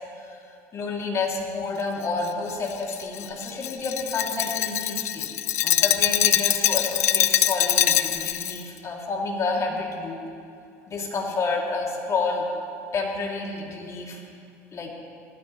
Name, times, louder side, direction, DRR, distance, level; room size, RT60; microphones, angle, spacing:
voice 1, 0.7-5.3 5.6-10.2 10.9-12.5 12.9-14.2 14.7-14.9, left 3 dB, 40° left, -1 dB, 2.9 m, -29 dB
Glass, 2.2-8.6, left 11 dB, 90° left, 0.4 m, -23 dB
19.0 x 12.5 x 3.2 m, 2.5 s
hypercardioid pair, 75°, 8 cm